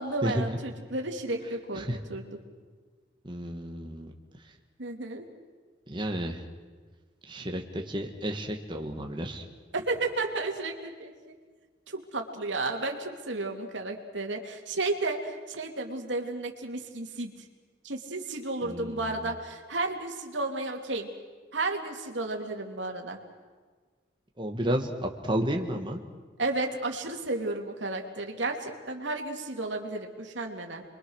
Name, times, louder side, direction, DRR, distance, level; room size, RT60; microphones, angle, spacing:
voice 1, 0.0-2.3 4.8-5.3 9.7-11.3 11.9-17.3 17.8-21.1 21.5-23.2 26.4-30.8, right 2 dB, 85° right, 3 dB, 2.8 m, -33 dB
voice 2, 3.2-4.1 5.9-6.4 7.3-9.4 18.6-19.3 24.4-26.0, equal, 25° right, 2 dB, 1.8 m, -32 dB
29.0 x 23.0 x 6.5 m, 1.4 s
head